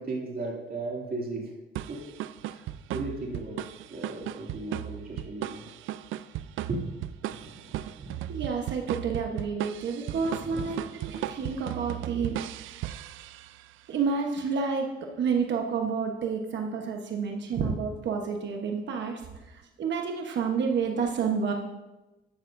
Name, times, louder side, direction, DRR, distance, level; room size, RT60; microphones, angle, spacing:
voice 1, 0.0-1.6 1.9-2.1 2.4-2.6 2.9-5.6 6.7-6.9 7.4-7.7 8.0-8.3 10.3-10.9, right 2 dB, 50° right, -1 dB, 2.5 m, -36 dB
sound 1, 1.8-13.7, right 13 dB, 85° right, 0.4 m, -36 dB
voice 2, 8.3-12.4 13.9-19.2 19.5-21.5, right 5 dB, 65° right, 2 dB, 1.1 m, -29 dB
12.5 x 11.5 x 2.6 m, 1.0 s
cardioid pair, 90°, 20 cm